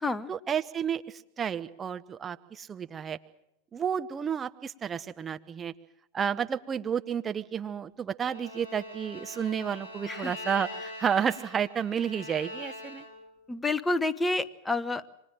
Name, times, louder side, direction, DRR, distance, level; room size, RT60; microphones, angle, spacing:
voice 1, 0.3-3.2 3.7-5.7 6.1-13.1, right 7 dB, 20° right, 9 dB, 1.0 m, -31 dB
Bowed string instrument, 8.2-13.4, left 1 dB, 85° right, 4.8 m, -42 dB
voice 2, 13.5-15.1, left 2 dB, 10° left, 18 dB, 1.0 m, -29 dB
24.5 x 20.0 x 7.5 m, 0.78 s
figure-of-eight pair, 90°, 0 cm